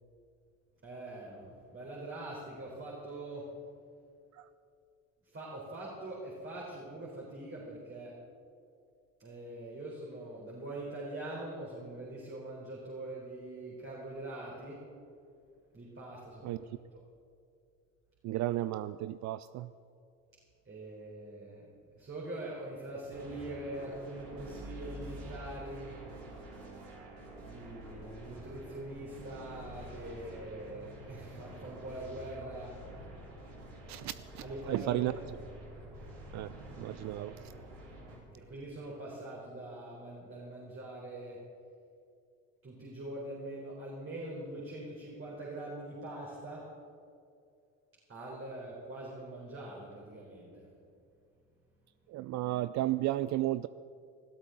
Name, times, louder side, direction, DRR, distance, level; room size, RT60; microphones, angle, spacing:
voice 1, 0.8-3.4 5.3-8.1 9.2-14.8 15.7-16.8 20.6-21.6 22.0-26.0 27.4-32.7 34.4-35.1 38.3-41.4 42.6-46.6 48.1-50.7, right 1 dB, 35° right, -5 dB, 4.3 m, -43 dB
voice 2, 18.2-19.7 33.9-35.1 36.3-36.5 36.8-37.3 52.1-53.7, right 15 dB, 50° right, 15 dB, 0.4 m, -33 dB
sound 1, 23.1-38.2, right 1 dB, 75° right, 3.9 m, -48 dB
20.0 x 13.0 x 4.0 m, 2.4 s
hypercardioid pair, 65°, 36 cm